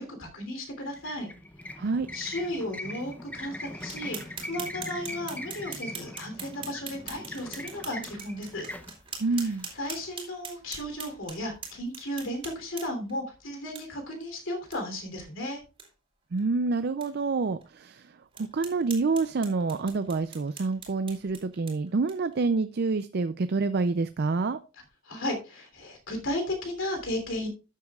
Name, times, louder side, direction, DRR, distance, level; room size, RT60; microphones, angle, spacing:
voice 1, 0.0-1.3 1.8-1.9 2.1-8.7 9.8-15.6 25.0-27.5, left 1 dB, 65° left, 5 dB, 3.1 m, -34 dB
sound 1, 0.8-10.1, left 1 dB, 5° left, 0.7 m, -41 dB
voice 2, 1.8-2.1 9.2-9.7 16.3-24.6, right 3 dB, 50° right, 11 dB, 0.4 m, -27 dB
sound 2, 3.8-13.1 13.7-13.8 14.2-14.3 14.7-14.8 15.2-15.3 15.6-15.9 16.4-16.5 17.0-17.1 17.6-17.7 18.3-22.4, right 5 dB, 25° right, 3.0 m, -43 dB
13.0 x 8.4 x 2.4 m, 0.32 s
head